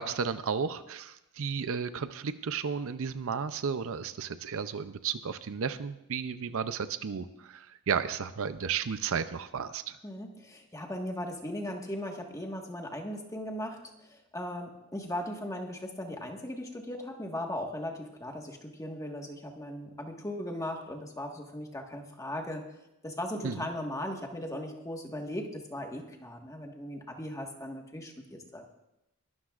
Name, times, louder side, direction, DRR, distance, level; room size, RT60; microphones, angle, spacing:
voice 1, 0.0-10.0 23.4-23.7, right 6 dB, 65° right, 12 dB, 0.6 m, -33 dB
voice 2, 10.0-13.8 14.1-22.6 23.0-28.6, left 1 dB, 15° left, 2 dB, 1.6 m, -38 dB
21.5 x 12.5 x 2.5 m, 0.89 s
head